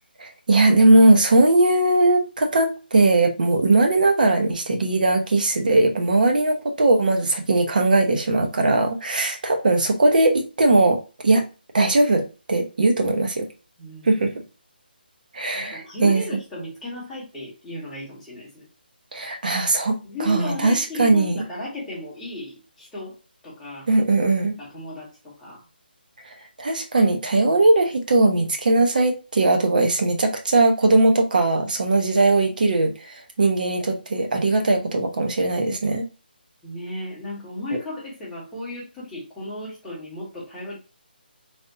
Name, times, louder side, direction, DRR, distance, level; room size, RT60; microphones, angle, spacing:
voice 1, 0.2-11.4 11.7-13.5 14.0-14.3 15.3-16.2 19.1-21.4 23.9-24.5 26.6-36.1, right 2 dB, 55° right, 0.8 m, -19 dB
voice 2, 13.8-14.3 15.5-18.7 20.0-23.9 24.6-25.6 36.6-40.8, left 1 dB, 5° left, 1.0 m, -35 dB
3.4 x 2.5 x 2.6 m
hypercardioid pair, 175°, 6 cm